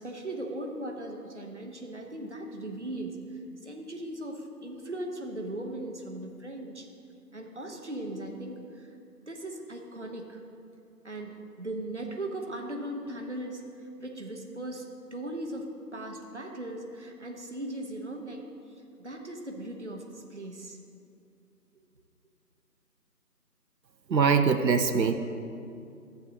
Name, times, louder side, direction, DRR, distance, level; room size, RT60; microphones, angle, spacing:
voice 1, 0.0-3.2 3.6-6.9 7.3-8.9 9.3-10.4 11.0-13.6 14.0-18.5 19.0-20.8, right 1 dB, 45° right, 2 dB, 0.8 m, -38 dB
voice 2, 24.1-25.2, right 5 dB, 90° right, 8 dB, 0.7 m, -23 dB
14.0 x 8.1 x 2.6 m, 2.5 s
figure-of-eight pair, 175°, 49 cm